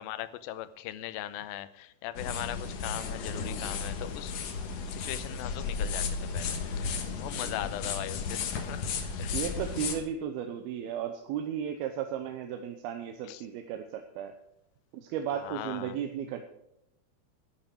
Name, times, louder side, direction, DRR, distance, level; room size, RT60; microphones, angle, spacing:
voice 1, 0.0-4.3 4.9-8.9 9.2-9.4 13.3-13.4 15.4-16.0, left 13 dB, 80° left, 13 dB, 2.4 m, -40 dB
sound 1, 2.2-10.0, left 5 dB, 60° left, 2.0 m, -34 dB
voice 2, 7.3-7.7 9.3-14.4 14.9-16.4, right 9 dB, 85° right, 6 dB, 2.7 m, -35 dB
11.0 x 10.0 x 6.1 m, 0.83 s
omnidirectional pair, 4.4 m